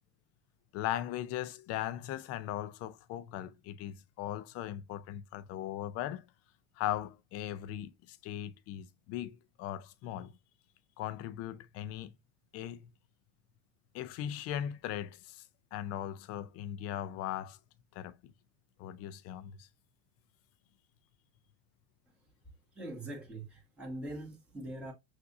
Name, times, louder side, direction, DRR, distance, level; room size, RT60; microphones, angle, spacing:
voice 1, 0.7-6.2 6.8-10.3 11.0-12.1 12.5-12.9 13.9-15.4 15.7-17.6 17.9-18.3 18.8-19.7, left 12 dB, 40° left, 0.5 m, -39 dB
voice 2, 22.7-24.9, right 1 dB, 5° right, 1.8 m, -42 dB
5.9 x 2.6 x 2.6 m
hypercardioid pair, 105°, 36 cm